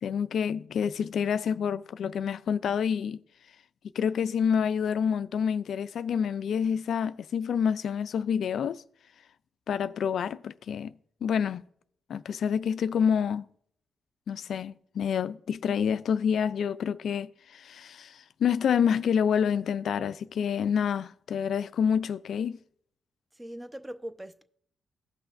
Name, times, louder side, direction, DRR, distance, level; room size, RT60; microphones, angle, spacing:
voice 1, 0.0-3.2 4.0-8.8 9.7-10.9 11.2-11.6 12.1-13.4 14.3-22.6, left 7 dB, 65° left, 0.3 m, -28 dB
voice 2, 23.3-24.4, right 1 dB, 15° right, 0.8 m, -41 dB
16.5 x 5.8 x 2.6 m
hypercardioid pair, 45°, 0 cm